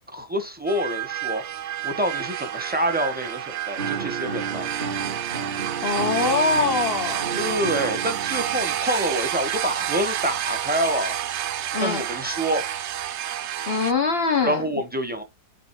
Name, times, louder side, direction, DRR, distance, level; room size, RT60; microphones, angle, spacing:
voice 1, 0.1-1.4 1.8-4.7 7.4-11.1 11.8-12.6 14.4-15.2, right 1 dB, 5° right, 1.1 m, -27 dB
sound 1, 0.7-13.9, right 11 dB, 70° right, 0.7 m, -29 dB
sound 2, 3.8-8.8, right 4 dB, 30° right, 2.2 m, -33 dB
voice 2, 5.8-7.3 11.7-12.0 13.7-14.6, left 4 dB, 50° left, 0.8 m, -23 dB
6.6 x 5.1 x 3.1 m
omnidirectional pair, 1.7 m